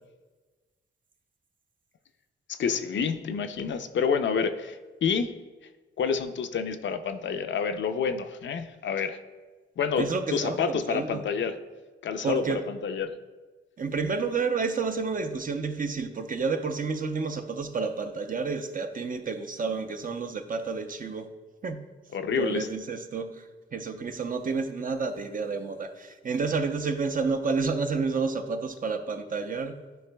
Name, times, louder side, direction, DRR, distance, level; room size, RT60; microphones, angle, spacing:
voice 1, 2.5-5.3 6.0-9.2 9.8-11.6 12.0-13.1 22.1-22.7, left 6 dB, 65° left, 8 dB, 0.5 m, -28 dB
voice 2, 10.0-11.2 12.2-12.6 13.8-21.3 21.6-21.8 22.4-23.4 23.7-29.8, right 4 dB, 40° right, 7 dB, 0.6 m, -30 dB
11.5 x 4.5 x 2.2 m, 1.3 s
cardioid pair, 80°, 21 cm